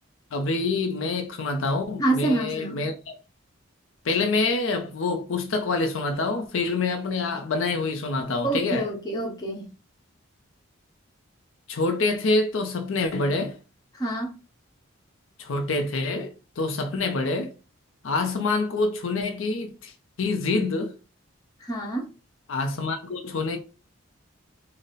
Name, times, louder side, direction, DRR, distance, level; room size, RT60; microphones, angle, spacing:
voice 1, 0.3-3.1 4.0-8.9 11.7-13.6 15.4-17.5 18.0-19.9 20.2-21.0 22.5-23.6, left 3 dB, 70° left, 0.5 m, -26 dB
voice 2, 2.0-2.9 8.4-9.7 13.9-14.3 21.6-22.1, right 2 dB, 20° left, 1.0 m, -27 dB
3.9 x 2.1 x 3.8 m
head